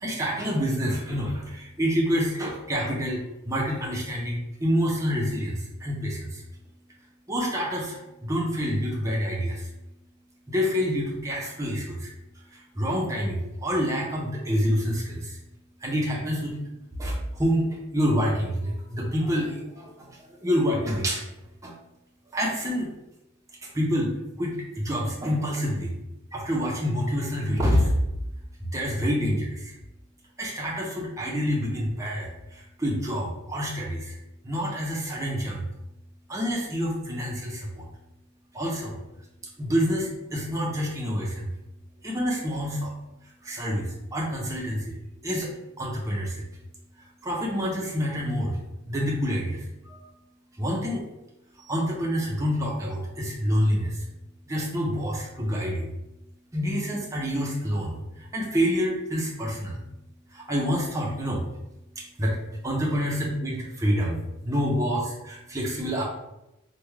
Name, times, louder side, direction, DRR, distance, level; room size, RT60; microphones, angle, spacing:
voice 1, 0.0-6.4 7.3-9.7 10.5-12.1 12.5-15.4 15.8-16.6 17.0-19.9 20.4-21.2 21.6-21.7 22.3-22.9 23.7-24.1 24.4-25.9 26.3-27.9 28.7-29.7 30.4-34.2 34.4-35.6 36.3-37.8 38.5-39.0 39.6-41.5 42.0-42.9 43.4-44.9 45.2-45.5 45.8-46.4 47.2-48.6 48.9-50.0 50.6-51.0 51.6-54.0 54.5-55.9 56.5-59.8 60.3-61.4 62.0-62.4 62.6-64.2 64.4-66.0, equal, 15° right, -3 dB, 0.6 m, -27 dB
3.4 x 2.1 x 3.1 m, 0.93 s
head